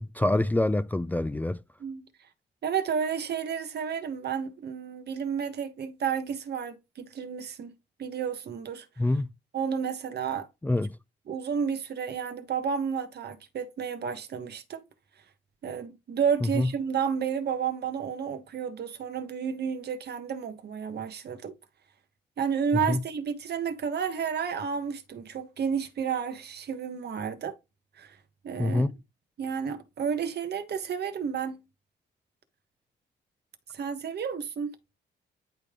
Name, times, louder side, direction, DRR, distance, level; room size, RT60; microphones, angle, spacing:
voice 1, 0.0-1.6 9.0-9.3 10.6-11.0 16.5-16.7 22.9-23.0 28.6-28.9, left 2 dB, 10° left, 0.4 m, -25 dB
voice 2, 2.6-7.7 8.0-8.9 9.5-10.5 11.3-14.8 15.6-21.5 22.4-27.6 28.0-28.2 28.4-28.8 29.4-31.6 33.7-34.7, right 7 dB, 55° right, 1.3 m, -31 dB
9.9 x 3.4 x 3.7 m
cardioid pair, 90°, 20 cm